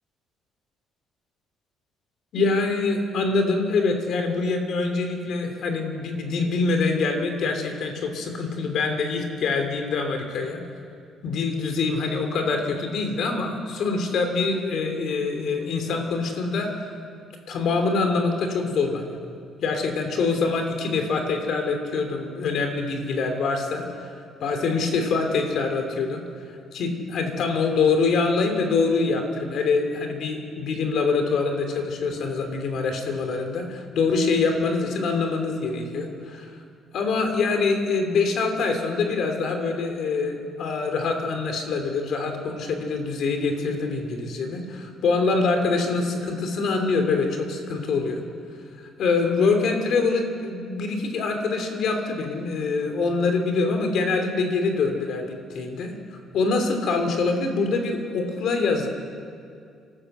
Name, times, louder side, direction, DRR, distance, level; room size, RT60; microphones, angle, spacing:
voice 1, 2.3-10.6 11.2-16.9 17.5-19.4 19.6-24.1 24.4-26.2 26.7-36.5 36.9-48.2 49.0-55.2 55.5-55.9 56.3-58.9, left 4 dB, 55° left, 5 dB, 2.9 m, -25 dB
27.5 x 13.5 x 8.0 m, 2.4 s
cardioid pair, 165°, 0 cm